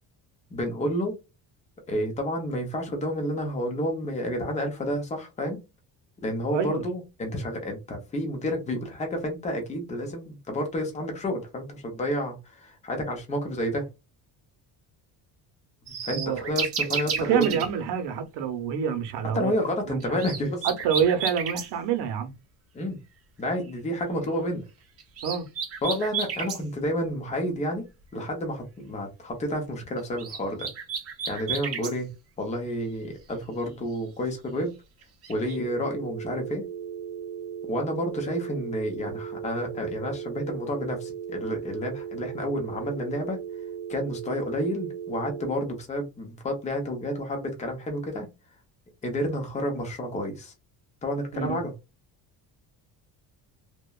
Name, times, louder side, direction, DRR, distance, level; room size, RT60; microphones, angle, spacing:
voice 1, 0.5-1.2 1.9-5.6 6.2-13.9 15.9-17.6 19.3-20.7 22.7-23.0 23.4-24.6 25.8-27.8 28.1-30.7 31.3-32.1 32.4-34.7 35.3-36.7 37.6-43.4 43.9-48.3 49.0-50.5 51.0-51.7, equal, 15° left, 0.6 m, -30 dB
voice 2, 6.5-6.8 16.1-16.5 16.9-19.5 19.9-20.2 20.6-22.3 25.2-25.5 51.3-51.6, right 8 dB, 75° right, 0.8 m, -27 dB
sound 1, 15.9-17.7 20.0-21.7 25.0-26.6 30.0-31.9 35.0-35.6, right 6 dB, 35° right, 0.6 m, -32 dB
sound 2, 35.5-45.5, right 8 dB, ahead, 1.1 m, -37 dB
2.9 x 2.2 x 2.2 m
cardioid pair, 180°, 41 cm